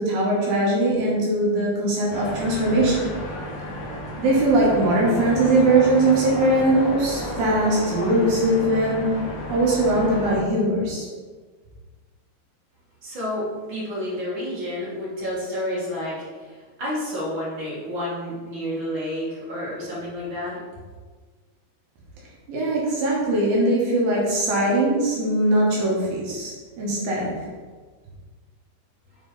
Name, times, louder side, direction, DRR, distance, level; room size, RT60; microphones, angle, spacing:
voice 1, 0.0-3.0 4.2-9.0 9.5-11.1 22.5-27.4, right 1 dB, 70° right, -5 dB, 2.8 m, -21 dB
sound 1, 2.1-10.4, left 1 dB, 65° left, 2.1 m, -31 dB
voice 2, 13.0-20.6, left 1 dB, 40° right, -8 dB, 2.0 m, -30 dB
7.3 x 4.3 x 3.9 m, 1.5 s
omnidirectional pair, 4.6 m